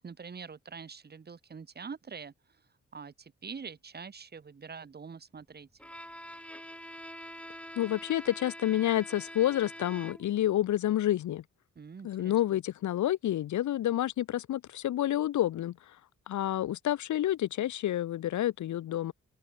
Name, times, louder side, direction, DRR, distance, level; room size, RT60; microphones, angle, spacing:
voice 1, 0.0-2.3 2.9-5.7 11.8-12.6, right 5 dB, 30° right, 1.0 m, -45 dB
Bowed string instrument, 5.8-10.5, equal, 5° left, 4.6 m, -45 dB
voice 2, 7.8-11.4 12.0-15.8 16.3-19.1, left 12 dB, 65° left, 0.7 m, -29 dB
open air
supercardioid pair, 55°, 32 cm